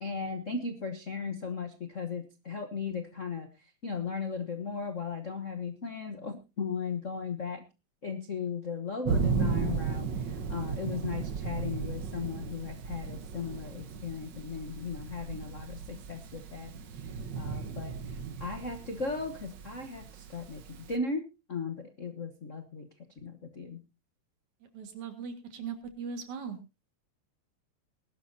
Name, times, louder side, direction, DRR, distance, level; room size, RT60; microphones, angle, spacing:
voice 1, 0.0-7.6 8.0-22.9 23.2-23.8, left 5 dB, 55° left, 6 dB, 0.8 m, -37 dB
Thunder, 9.1-21.0, right 5 dB, 55° right, 1.3 m, -35 dB
voice 2, 24.6-26.6, right 6 dB, 75° right, 6 dB, 3.4 m, -39 dB
20.5 x 12.0 x 2.8 m, 0.28 s
omnidirectional pair, 3.4 m